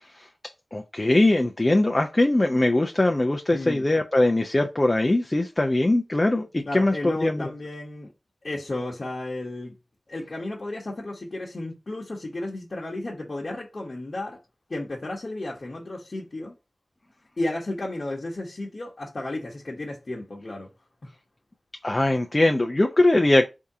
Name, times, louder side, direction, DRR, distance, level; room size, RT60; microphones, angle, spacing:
voice 1, 0.7-7.5 21.8-23.5, left 1 dB, 30° left, 0.5 m, -21 dB
voice 2, 3.5-3.8 6.6-8.1 8.4-9.7 10.1-14.4 14.7-16.5 17.4-20.7 21.0-21.1, left 2 dB, 55° left, 1.1 m, -33 dB
3.6 x 2.8 x 4.7 m
wide cardioid pair, 70°, 0 cm